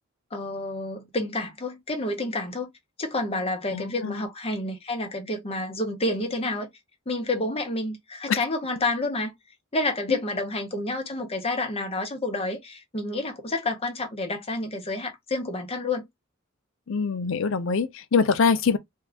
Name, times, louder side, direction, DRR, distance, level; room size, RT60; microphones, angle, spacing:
voice 1, 0.3-2.7 3.0-6.7 7.1-9.3 9.7-16.1, left 2 dB, 30° left, 0.9 m, -29 dB
voice 2, 3.7-4.2 8.3-8.4 10.1-10.2 16.9-18.8, left 5 dB, 65° left, 0.5 m, -24 dB
2.7 x 2.4 x 3.3 m
head